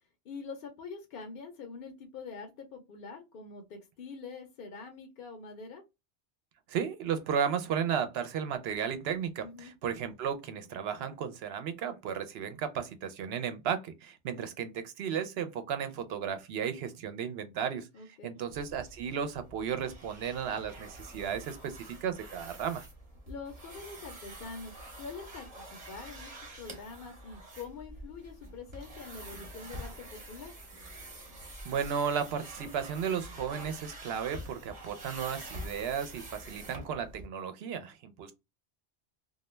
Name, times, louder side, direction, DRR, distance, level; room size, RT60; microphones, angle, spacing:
voice 1, 0.2-5.8 9.4-9.7 17.9-18.4 23.3-26.3 26.6-30.5, left 4 dB, 60° left, 0.7 m, -45 dB
voice 2, 6.7-17.9 18.2-22.8 31.4-38.3, right 7 dB, 70° right, 0.8 m, -34 dB
sound 1, 18.5-37.3, right 1 dB, 35° right, 0.8 m, -47 dB
2.2 x 2.2 x 3.0 m
omnidirectional pair, 1.1 m